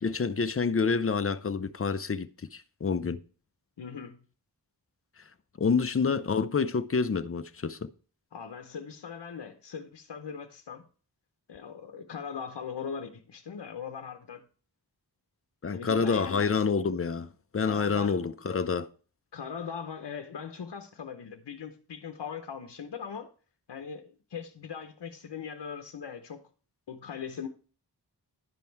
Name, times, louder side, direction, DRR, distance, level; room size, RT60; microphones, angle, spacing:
voice 1, 0.0-3.2 5.6-7.9 15.6-18.9, left 5 dB, 35° left, 0.6 m, -28 dB
voice 2, 3.8-4.2 8.3-10.9 11.5-14.4 15.7-16.6 17.6-18.2 19.3-23.3 23.7-26.5 26.9-27.5, left 6 dB, 80° left, 0.8 m, -40 dB
11.0 x 5.3 x 4.5 m
wide cardioid pair, 65°, 41 cm